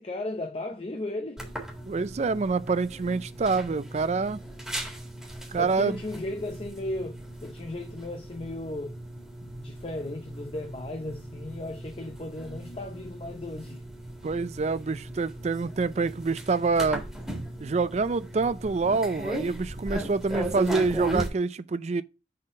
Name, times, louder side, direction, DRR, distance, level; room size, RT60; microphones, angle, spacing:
voice 1, 0.0-1.4 5.6-9.0 9.4-13.8, left 2 dB, 30° left, 0.6 m, -36 dB
sound 1, 1.4-21.3, right 1 dB, 5° right, 1.8 m, -37 dB
voice 2, 1.9-4.4 5.5-6.0 14.2-17.1 17.6-22.0, right 4 dB, 40° right, 0.4 m, -26 dB
6.5 x 3.8 x 5.0 m
head